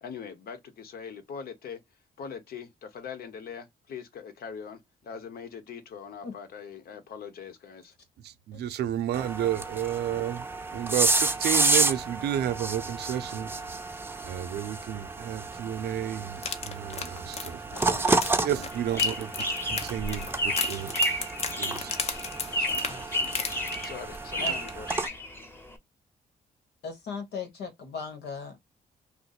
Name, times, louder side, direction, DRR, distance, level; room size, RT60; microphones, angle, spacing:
voice 1, 0.0-1.8 2.2-7.9 17.7-18.7 22.5-23.3 23.8-25.0, left 6 dB, 65° left, 0.9 m, -42 dB
voice 2, 8.2-10.5 10.7-13.5 14.2-17.6 18.4-21.0 21.6-22.1, right 11 dB, 80° right, 0.6 m, -32 dB
sound 1, 9.1-25.1, right 3 dB, 15° right, 0.6 m, -31 dB
sound 2, 16.4-24.2 24.5-24.7 25.0-25.1, left 4 dB, 40° left, 0.7 m, -35 dB
sound 3, 18.7-25.7, left 1 dB, 15° left, 1.0 m, -32 dB
voice 3, 26.8-28.6, left 5 dB, 85° left, 1.2 m, -37 dB
2.6 x 2.2 x 4.0 m
cardioid pair, 90°, 17 cm